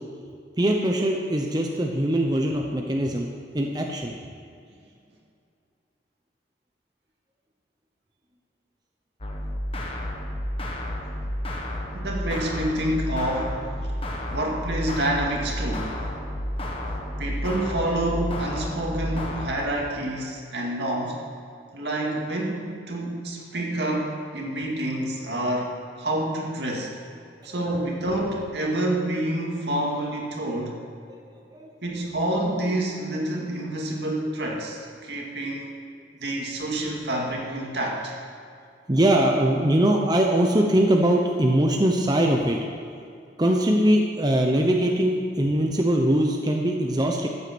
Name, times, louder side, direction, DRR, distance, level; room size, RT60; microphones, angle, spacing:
voice 1, 0.6-3.3 3.5-4.1 27.4-27.5 31.5-31.7 36.8-36.9 38.9-42.6 43.4-47.3, right 1 dB, 25° right, 1 dB, 0.8 m, -22 dB
sound 1, 9.2-19.5, equal, 30° left, 1.4 m, -31 dB
voice 2, 11.9-13.6 14.3-15.9 17.2-21.2 21.7-25.7 26.0-26.9 27.4-30.8 31.8-35.7 36.2-38.2, right 1 dB, 70° right, -1 dB, 2.3 m, -28 dB
14.0 x 8.2 x 6.1 m, 2.3 s
head